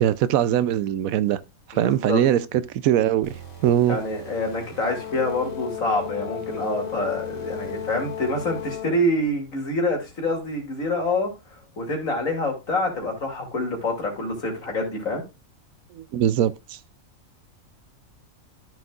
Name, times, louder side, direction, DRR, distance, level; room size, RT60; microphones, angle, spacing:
voice 1, 0.0-1.4 1.7-2.4 2.7-3.3 3.6-4.0 15.9-16.8, right 11 dB, 80° right, 1.0 m, -21 dB
voice 2, 1.7-2.2 3.9-11.3 11.8-15.2, left 1 dB, 70° left, 3.0 m, -26 dB
sound 1, 3.2-9.0, right 6 dB, 30° left, 2.9 m, -44 dB
Brass instrument, 4.9-9.1, left 11 dB, 85° left, 1.1 m, -34 dB
13.5 x 6.4 x 2.4 m
omnidirectional pair, 1.5 m